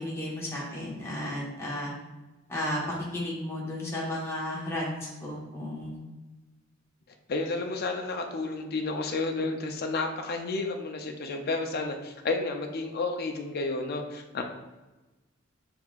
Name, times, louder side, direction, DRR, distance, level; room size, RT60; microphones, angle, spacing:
voice 1, 0.0-1.9 2.5-6.0, left 1 dB, 15° left, -5 dB, 1.2 m, -33 dB
voice 2, 7.3-14.4, left 3 dB, 50° left, 4 dB, 0.5 m, -31 dB
6.3 x 3.5 x 2.4 m, 1.1 s
head